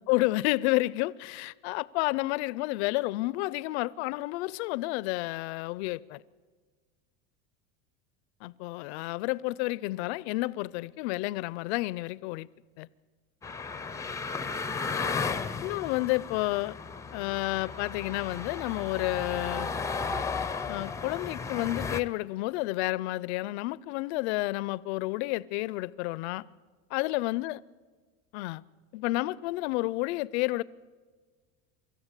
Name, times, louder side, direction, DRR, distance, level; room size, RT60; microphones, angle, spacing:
voice 1, 0.0-6.2 8.4-12.5 12.8-12.9 15.6-16.8 17.1-19.7 20.7-26.4 26.9-27.6 28.3-28.6 28.9-30.6, left 20 dB, 75° left, 0.6 m, -30 dB
sound 1, 13.4-22.0, left 5 dB, 10° left, 0.5 m, -34 dB
24.0 x 13.5 x 8.2 m
supercardioid pair, 145°, 33 cm